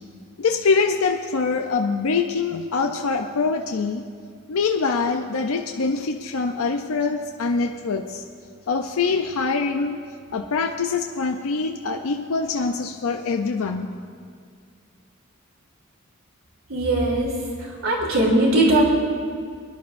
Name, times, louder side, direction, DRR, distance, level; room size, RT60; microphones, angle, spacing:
voice 1, 0.4-4.1 4.5-8.2 8.7-10.0 10.3-13.9, left 4 dB, 90° left, 4 dB, 0.5 m, -24 dB
voice 2, 16.7-17.3 17.8-18.8, right 1 dB, 80° right, -3 dB, 3.1 m, -19 dB
23.0 x 10.5 x 2.6 m, 2.1 s
head